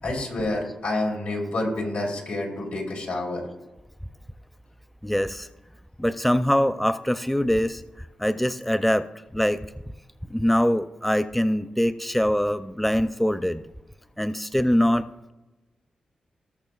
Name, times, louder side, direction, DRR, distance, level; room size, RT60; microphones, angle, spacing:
voice 1, 0.0-3.4, left 2 dB, 80° left, -1 dB, 3.7 m, -28 dB
voice 2, 5.0-5.5 6.0-9.6 10.3-13.6 14.2-15.3, equal, 5° left, 12 dB, 0.5 m, -23 dB
19.0 x 6.4 x 2.4 m, 1.1 s
cardioid pair, 50°, 2 cm